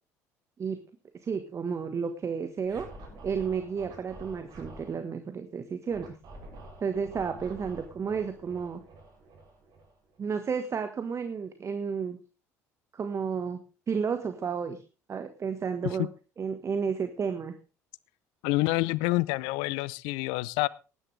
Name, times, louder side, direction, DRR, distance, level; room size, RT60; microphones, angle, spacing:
voice 1, 1.2-2.9 3.2-6.2 6.8-8.8 10.2-12.2 12.9-13.6 13.9-14.8 15.1-16.1 16.4-17.6, right 6 dB, 35° right, 8 dB, 1.5 m, -32 dB
Scratching (performance technique), 2.6-5.0 5.9-10.2, right 2 dB, 55° right, 7.1 m, -47 dB
voice 2, 18.4-20.7, left 20 dB, 65° left, 23 dB, 0.6 m, -27 dB
18.5 x 11.0 x 3.4 m, 0.32 s
figure-of-eight pair, 60°, 9 cm